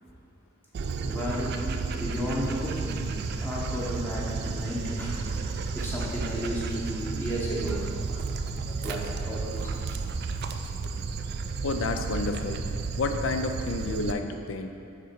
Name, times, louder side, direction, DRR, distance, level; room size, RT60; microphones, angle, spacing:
Dog, 0.7-14.1, right 4 dB, 55° right, 0.3 m, -32 dB
voice 1, 1.0-1.6 1.9-5.3 5.7-9.9, equal, 10° left, -7 dB, 0.7 m, -34 dB
voice 2, 11.6-12.6 13.0-14.7, left 3 dB, 70° left, 6 dB, 0.4 m, -30 dB
6.7 x 3.7 x 4.3 m, 2.7 s
head